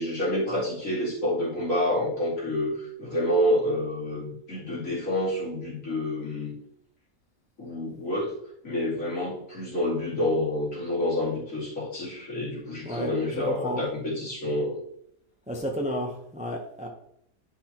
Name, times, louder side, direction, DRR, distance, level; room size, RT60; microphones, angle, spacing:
voice 1, 0.0-2.7 3.0-6.5 7.6-8.3 8.6-14.8, left 1 dB, 65° left, -6 dB, 3.0 m, -28 dB
voice 2, 12.8-13.9 15.5-16.9, equal, 5° right, 0 dB, 0.7 m, -32 dB
10.5 x 5.5 x 3.0 m, 0.73 s
omnidirectional pair, 1.5 m